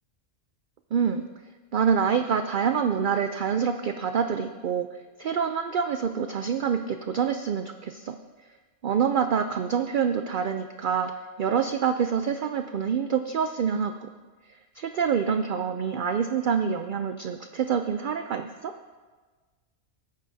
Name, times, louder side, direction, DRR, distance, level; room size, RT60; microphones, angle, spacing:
voice 1, 0.9-1.3 1.7-4.9 5.2-8.2 8.8-11.1 11.4-14.1 14.8-18.7, right 7 dB, 65° right, 7 dB, 0.5 m, -26 dB
19.0 x 9.3 x 2.7 m, 1.4 s
omnidirectional pair, 1.3 m